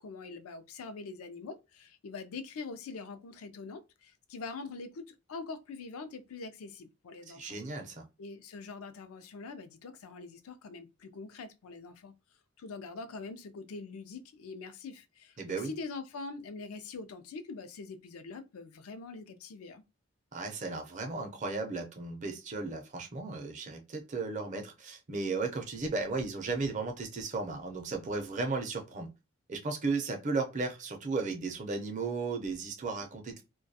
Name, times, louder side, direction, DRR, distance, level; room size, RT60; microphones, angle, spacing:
voice 1, 0.0-7.6 8.2-12.1 12.6-19.8, left 4 dB, 90° left, 0.4 m, -44 dB
voice 2, 7.3-8.0 15.4-15.7 20.3-29.1 29.5-33.4, right 3 dB, 35° right, 0.5 m, -35 dB
2.2 x 2.2 x 2.6 m
head